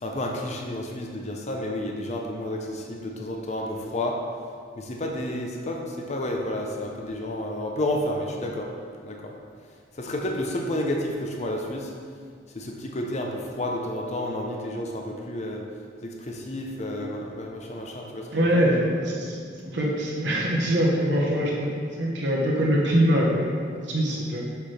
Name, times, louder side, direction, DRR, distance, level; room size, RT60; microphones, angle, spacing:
voice 1, 0.0-4.1 4.8-8.7 9.0-9.3 10.0-11.9 12.5-15.6 16.0-18.6, left 1 dB, 40° left, 0 dB, 0.6 m, -31 dB
voice 2, 18.3-24.4, equal, 65° right, -3 dB, 1.0 m, -24 dB
5.9 x 5.8 x 3.3 m, 2.1 s
head